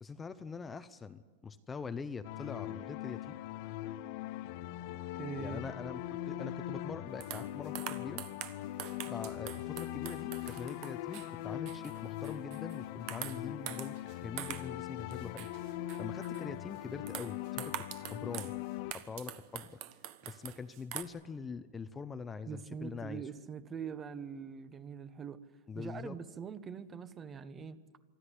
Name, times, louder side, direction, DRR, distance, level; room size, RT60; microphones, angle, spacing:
voice 1, 0.0-3.4 5.4-8.2 9.0-14.0 14.2-15.5 16.0-18.5 18.9-19.8 20.2-23.2 25.7-26.2, left 5 dB, 15° left, 0.7 m, -43 dB
sound 1, 2.2-18.9, left 14 dB, 50° left, 0.7 m, -41 dB
voice 2, 5.1-5.8 22.5-25.4 25.7-27.8, right 6 dB, 20° right, 1.0 m, -43 dB
sound 2, 7.2-12.8 13.1-14.8 15.1-16.4 17.1-18.6 18.9-21.0, right 13 dB, 45° right, 1.3 m, -45 dB
24.5 x 13.5 x 10.0 m
supercardioid pair, 145°, 0 cm